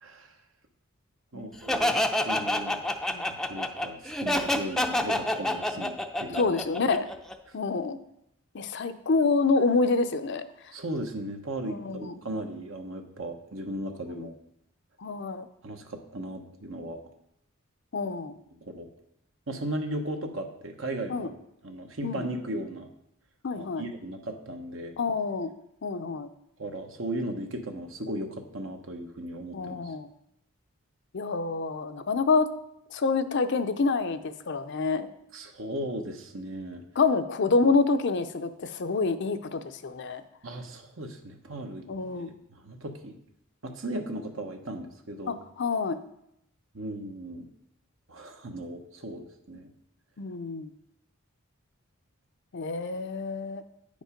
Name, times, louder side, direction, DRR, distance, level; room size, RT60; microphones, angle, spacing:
voice 1, 0.0-0.3 1.3-2.0 2.2-2.8 3.3-6.5 10.7-14.3 15.6-17.0 18.6-18.9 19.5-21.3 21.6-22.9 23.6-24.9 26.6-29.9 35.3-36.8 40.4-41.9 42.3-43.2 43.6-45.4 46.7-47.5 48.1-49.7, right 1 dB, 65° right, 4 dB, 1.1 m, -36 dB
Laughter, 1.7-7.3, left 1 dB, ahead, 0.5 m, -27 dB
voice 2, 6.3-7.1 7.5-8.0 8.5-10.4 11.7-12.2 14.1-14.3 15.0-15.5 17.9-18.3 21.1-21.3 22.0-22.3 23.4-23.8 25.0-25.5 25.8-26.3 29.5-30.1 31.1-32.5 32.9-35.1 37.0-40.2 41.9-42.3 45.3-46.0 50.2-50.7 52.5-53.6, left 4 dB, 60° left, 10 dB, 0.6 m, -27 dB
9.5 x 5.2 x 5.1 m, 0.78 s
head